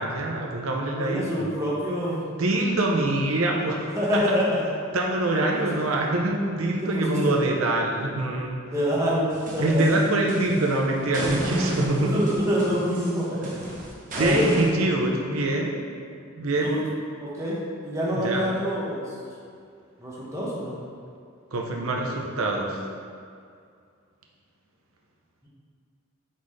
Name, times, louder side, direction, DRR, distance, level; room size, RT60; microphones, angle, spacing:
voice 1, 0.0-1.5 2.4-4.2 4.9-8.6 9.6-12.2 14.2-15.8 16.4-16.7 18.1-18.4 21.5-22.8, right 2 dB, 85° right, 0 dB, 0.7 m, -24 dB
voice 2, 1.0-2.3 3.9-4.6 5.9-6.0 6.8-7.4 8.7-9.2 9.5-10.0 11.1-13.4 14.2-14.5 16.6-16.8 17.2-17.6 17.8-19.0 20.0-20.8, equal, 15° right, -7 dB, 1.3 m, -26 dB
sound 1, 9.3-10.7 11.1-14.7, right 1 dB, 40° right, 1.1 m, -32 dB
9.0 x 4.1 x 3.3 m, 2.3 s
head